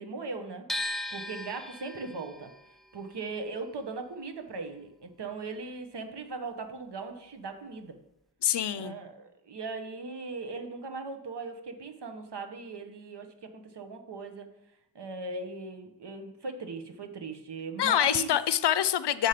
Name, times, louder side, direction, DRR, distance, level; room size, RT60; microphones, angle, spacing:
voice 1, 0.0-2.5 2.9-8.0 8.8-14.5 14.9-18.3, right 4 dB, 80° right, 6 dB, 1.0 m, -39 dB
sound 1, 0.7-6.7 7.0-8.3, left 1 dB, ahead, 0.6 m, -40 dB
voice 2, 8.4-9.0 17.8-19.3, left 10 dB, 80° left, 15 dB, 0.5 m, -25 dB
7.1 x 5.0 x 5.7 m, 0.83 s
wide cardioid pair, 65°, 41 cm